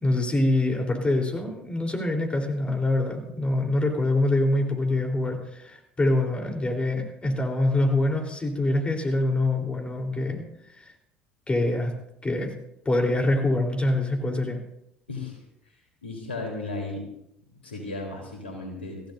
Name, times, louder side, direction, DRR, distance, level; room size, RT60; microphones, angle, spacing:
voice 1, 0.0-10.4 10.8-10.9 11.5-11.9 12.2-12.6 12.9-14.6, left 2 dB, 20° left, 2 dB, 3.7 m, -25 dB
voice 2, 15.1-15.4 16.0-17.1 17.6-19.0, left 2 dB, 80° left, 1 dB, 3.8 m, -34 dB
24.0 x 16.0 x 2.7 m, 0.77 s
figure-of-eight pair, 65°, 6 cm